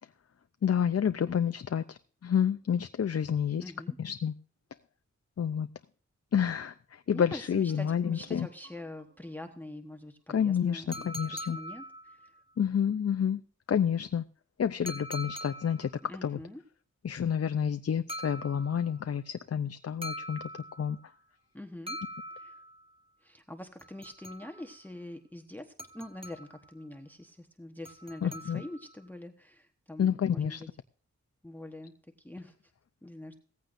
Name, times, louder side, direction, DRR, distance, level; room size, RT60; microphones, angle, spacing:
voice 1, 0.6-3.6 4.0-4.3 5.4-5.7 6.3-8.5 10.3-11.6 12.6-13.4 13.7-14.2 14.6-15.9 16.2-16.4 17.0-20.4 20.8-21.0 28.2-28.6 30.0-30.6, left 8 dB, 55° left, 0.5 m, -29 dB
voice 2, 3.6-4.0 7.1-12.3 16.1-16.6 21.5-22.0 22.3-22.6 23.2-30.7 31.4-32.5 33.0-33.4, left 1 dB, 5° left, 1.0 m, -44 dB
sound 1, 7.7-11.3, right 7 dB, 65° right, 3.4 m, -60 dB
sound 2, 10.9-12.4 14.9-16.0 18.1-19.0 20.0-21.0 21.9-22.9 23.8-24.8 25.8-26.7 27.8-28.9, equal, 20° right, 1.3 m, -43 dB
17.0 x 15.0 x 2.6 m
wide cardioid pair, 115°, 29 cm